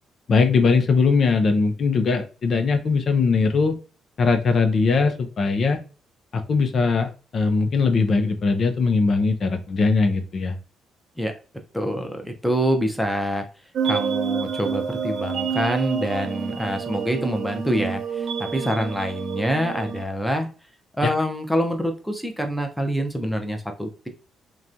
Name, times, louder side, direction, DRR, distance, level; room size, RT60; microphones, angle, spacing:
voice 1, 0.3-3.8 4.2-5.8 6.5-10.6 21.0-21.1, left 4 dB, 50° left, 6 dB, 0.6 m, -20 dB
voice 2, 11.7-13.5 13.8-20.5 20.9-24.1, equal, ahead, 4 dB, 0.7 m, -26 dB
sound 1, 13.8-20.0, right 6 dB, 65° right, 0.5 m, -28 dB
2.9 x 2.3 x 2.5 m, 0.34 s
cardioid pair, 90°, 0 cm